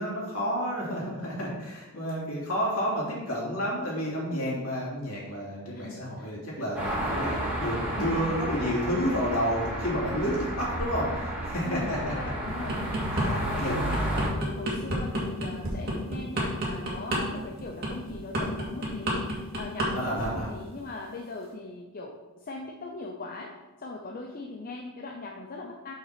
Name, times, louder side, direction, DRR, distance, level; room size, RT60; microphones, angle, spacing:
voice 1, 0.0-12.0 13.6-13.8 20.0-20.5, equal, 65° left, -4 dB, 2.9 m, -30 dB
voice 2, 4.3-4.7 5.7-6.3 11.6-12.8 13.1-19.3 19.5-23.5 23.8-25.9, left 3 dB, 40° left, 1 dB, 0.7 m, -39 dB
sound 1, 6.7-14.3, right 1 dB, 5° right, 2.7 m, -32 dB
sound 2, 12.5-13.3 13.7-19.9 20.2-20.5, right 1 dB, 45° right, 2.3 m, -29 dB
6.0 x 5.7 x 5.9 m, 1.2 s
head